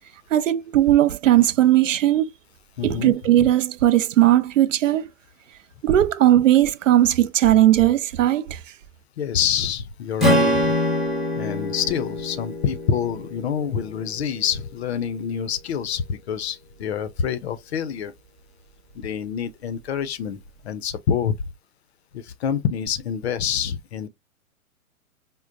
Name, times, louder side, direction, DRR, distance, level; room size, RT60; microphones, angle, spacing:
voice 1, 0.3-2.3 2.8-5.1 5.8-8.6, right 13 dB, 60° right, 0.5 m, -18 dB
voice 2, 2.8-3.5 9.2-10.8 11.3-18.1 18.9-21.3 22.1-24.1, left 8 dB, 45° left, 0.6 m, -27 dB
Strum, 10.2-14.5, left 1 dB, ahead, 0.8 m, -24 dB
5.2 x 2.1 x 2.4 m
hypercardioid pair, 130°, 44 cm